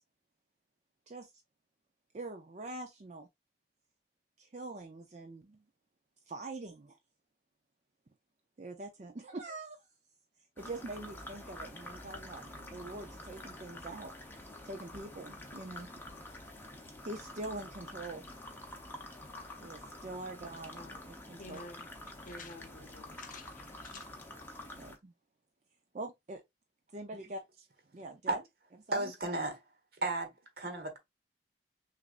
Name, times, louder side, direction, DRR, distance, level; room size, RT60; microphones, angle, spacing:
voice 1, 2.1-3.3 4.4-5.6 6.3-7.0 8.6-9.8 10.6-14.1 14.6-15.9 17.0-18.2 19.6-21.6 24.8-25.1 25.9-26.4 26.9-27.5 27.9-28.4 28.9-29.1, right 2 dB, 40° right, 0.5 m, -44 dB
sound 1, 10.6-25.0, left 1 dB, 10° left, 0.8 m, -48 dB
voice 2, 20.7-21.0 21.4-21.9 22.3-24.1, left 3 dB, 50° left, 0.7 m, -49 dB
voice 3, 28.9-29.6 30.0-30.3 30.6-31.0, right 2 dB, 55° right, 1.3 m, -33 dB
6.2 x 2.6 x 2.5 m
head